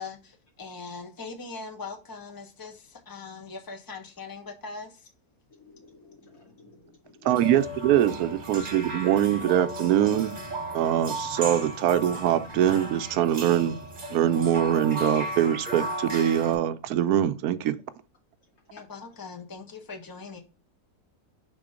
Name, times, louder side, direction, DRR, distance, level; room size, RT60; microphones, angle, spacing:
voice 1, 0.0-5.0 18.7-20.4, left 4 dB, 15° left, 1.0 m, -41 dB
voice 2, 5.5-7.6, left 3 dB, 70° left, 2.9 m, -54 dB
voice 3, 7.2-10.3 10.7-13.8 14.1-17.8, right 11 dB, 75° right, 1.1 m, -23 dB
sound 1, 7.3-16.5, right 1 dB, 35° right, 1.2 m, -36 dB
6.0 x 3.7 x 4.9 m
omnidirectional pair, 1.6 m